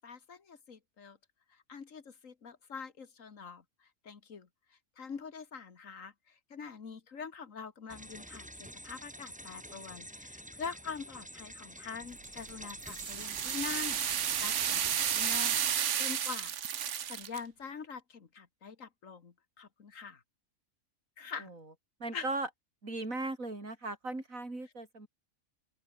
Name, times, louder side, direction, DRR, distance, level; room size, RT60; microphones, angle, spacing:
voice 1, 0.0-1.2 1.5-3.6 4.0-4.5 5.0-16.6 17.1-20.2 21.2-21.5 22.1-22.3, left 6 dB, 75° left, 2.1 m, -44 dB
sound 1, 7.9-15.8, equal, 5° right, 2.8 m, -48 dB
sound 2, 12.2-17.4, right 9 dB, 65° right, 1.3 m, -32 dB
voice 2, 22.0-22.5 22.8-25.1, right 2 dB, 85° right, 5.9 m, -37 dB
open air
omnidirectional pair, 1.4 m